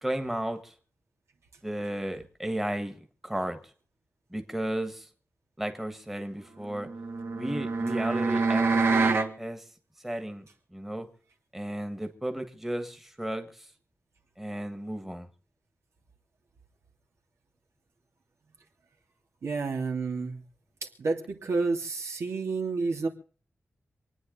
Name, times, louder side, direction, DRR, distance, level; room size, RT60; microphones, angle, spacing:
voice 1, 0.0-0.7 1.6-3.0 3.2-3.6 4.3-5.1 5.6-6.9 7.3-9.1 9.4-9.7 10.0-10.4 10.7-11.1 11.5-13.7 14.4-15.3, right 1 dB, 5° right, 7 dB, 1.5 m, -34 dB
sound 1, 6.7-9.3, right 4 dB, 60° right, 1.7 m, -26 dB
voice 2, 19.4-20.4 21.0-23.1, right 4 dB, 85° right, 2 dB, 2.8 m, -30 dB
27.0 x 9.6 x 3.8 m, 0.42 s
wide cardioid pair, 160°, 5 cm